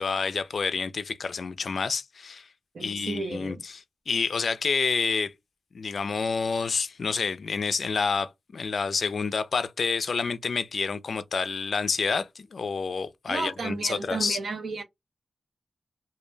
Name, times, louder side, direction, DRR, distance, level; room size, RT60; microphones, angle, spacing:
voice 1, 0.0-2.5 2.8-5.3 5.7-14.4, left 5 dB, 60° left, 0.3 m, -28 dB
voice 2, 2.7-3.6 13.3-14.8, right 3 dB, 75° right, 0.7 m, -33 dB
2.2 x 2.1 x 3.1 m
wide cardioid pair, 145°, 0 cm